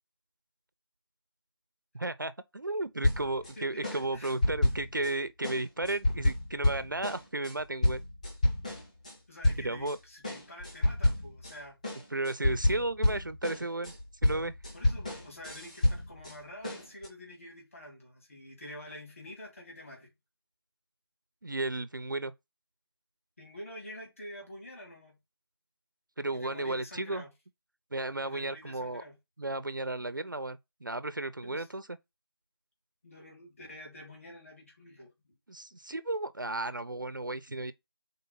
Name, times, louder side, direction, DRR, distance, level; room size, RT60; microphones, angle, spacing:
voice 1, 1.9-8.0 9.6-10.0 12.1-13.9 14.2-14.5 21.4-22.3 26.2-27.2 27.9-29.0 29.4-31.9 35.5-37.7, right 2 dB, 55° right, 0.5 m, -34 dB
sound 1, 3.0-3.5 3.8-5.1 5.4-9.1 9.4-9.9 10.2-11.5 11.8-16.3 16.6-17.1, left 1 dB, 15° left, 1.4 m, -29 dB
voice 2, 3.6-4.3 9.3-11.8 14.7-20.1 23.4-25.2 26.3-27.3 28.2-29.1 31.4-31.7 33.0-35.3, left 1 dB, 35° left, 2.9 m, -47 dB
4.7 x 3.9 x 5.4 m
figure-of-eight pair, 170°, 13 cm